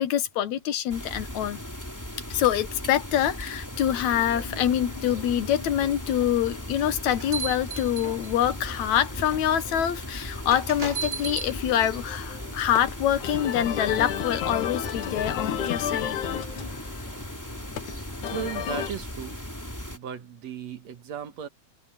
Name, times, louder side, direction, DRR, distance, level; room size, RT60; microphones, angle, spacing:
voice 1, 0.0-1.6 2.3-16.2, left 10 dB, 75° left, 2.4 m, -25 dB
sound 1, 0.9-20.0, equal, 5° left, 3.2 m, -37 dB
sound 2, 3.8-18.9, left 9 dB, 90° left, 3.0 m, -36 dB
sound 3, 6.8-8.5 9.3-9.4 10.5-11.5, right 5 dB, 25° right, 5.2 m, -34 dB
voice 2, 18.3-19.4 19.9-21.5, right 8 dB, 65° right, 2.7 m, -36 dB
omnidirectional pair, 3.4 m